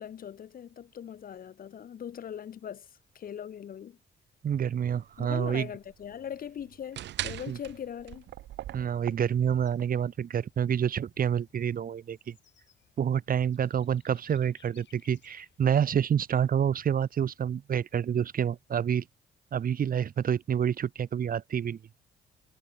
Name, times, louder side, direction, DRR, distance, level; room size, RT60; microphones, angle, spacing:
voice 1, 0.0-4.0 5.2-8.3, left 9 dB, 45° left, 0.7 m, -40 dB
voice 2, 4.4-5.7 7.5-7.6 8.7-12.3 13.0-19.0 19.5-21.8, right 8 dB, 45° right, 0.9 m, -28 dB
sound 1, 4.5-9.8, right 13 dB, 60° right, 0.5 m, -41 dB
Bird / Insect, 8.0-16.6, left 10 dB, 65° left, 6.9 m, -66 dB
cardioid pair, 90°, 20 cm